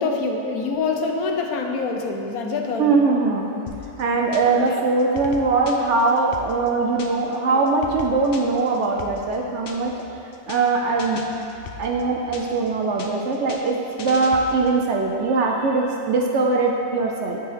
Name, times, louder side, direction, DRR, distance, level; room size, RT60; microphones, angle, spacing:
voice 1, 0.0-3.0 4.5-4.9 7.5-7.8, left 4 dB, 75° left, 2 dB, 1.2 m, -26 dB
voice 2, 2.8-3.5 4.0-9.9 10.5-11.2 11.8-17.4, right 3 dB, 65° right, 0 dB, 0.8 m, -21 dB
sound 1, 3.7-4.7 5.0-7.4 7.7-10.0 10.3-10.7 11.0-12.7 13.0-14.8, left 5 dB, 55° left, 0.6 m, -38 dB
9.0 x 4.1 x 5.6 m, 2.9 s
omnidirectional pair, 1.6 m